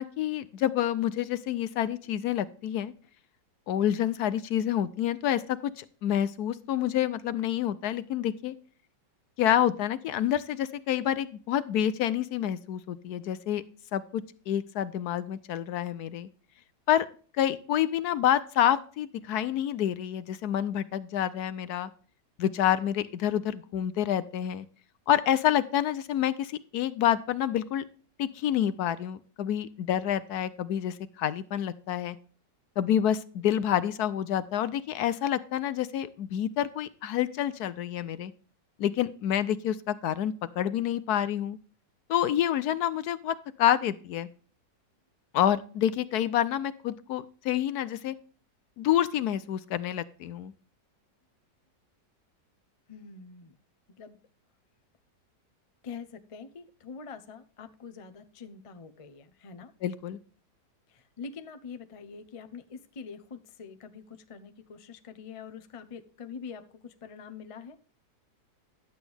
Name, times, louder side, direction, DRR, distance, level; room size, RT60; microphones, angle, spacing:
voice 1, 0.0-2.9 3.7-8.5 9.4-13.6 13.9-16.3 16.9-17.1 17.3-21.9 22.4-24.7 25.1-27.8 28.2-32.2 32.8-38.3 38.8-41.6 42.1-44.3 45.3-48.1 48.8-50.5 59.8-60.2, left 11 dB, 70° left, 15 dB, 1.0 m, -28 dB
voice 2, 52.9-53.5 54.0-54.2 55.8-59.7 60.9-67.8, left 5 dB, 45° left, 8 dB, 0.4 m, -44 dB
11.0 x 8.0 x 3.4 m, 0.43 s
omnidirectional pair, 1.9 m